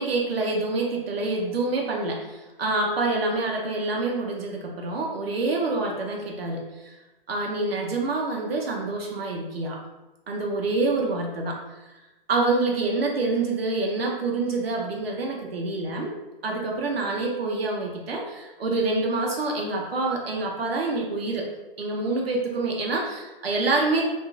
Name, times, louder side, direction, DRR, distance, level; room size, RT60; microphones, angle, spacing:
voice 1, 0.0-7.0 7.3-9.8 10.3-11.6 11.9-12.0 12.3-16.1 16.4-21.5 21.8-24.0, right 3 dB, 85° right, 0 dB, 0.7 m, -27 dB
2.8 x 2.4 x 2.4 m, 1.1 s
hypercardioid pair, 150°, 29 cm